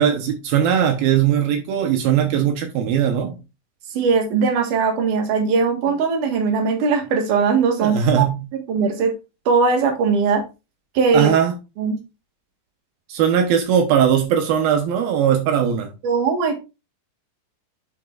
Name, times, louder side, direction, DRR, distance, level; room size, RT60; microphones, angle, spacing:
voice 1, 0.0-3.4 7.8-8.4 11.1-11.5 13.1-15.9, right 8 dB, 80° right, 2.9 m, -19 dB
voice 2, 3.9-8.3 8.5-9.1 9.5-10.4 10.9-11.3 11.8-12.0 16.0-16.6, right 5 dB, 65° right, 3.0 m, -19 dB
8.6 x 7.6 x 2.5 m
omnidirectional pair, 4.2 m